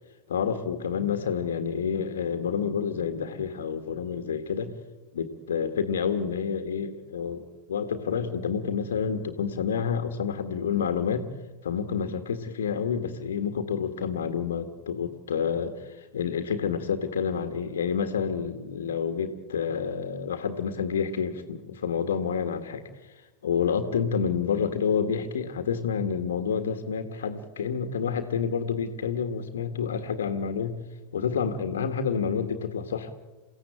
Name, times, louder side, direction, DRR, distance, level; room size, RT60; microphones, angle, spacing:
voice 1, 0.3-4.7 5.1-11.3 11.6-30.8 31.1-33.1, left 6 dB, 65° left, 8 dB, 1.7 m, -29 dB
28.5 x 16.0 x 8.9 m, 1.2 s
figure-of-eight pair, 90°, 0 cm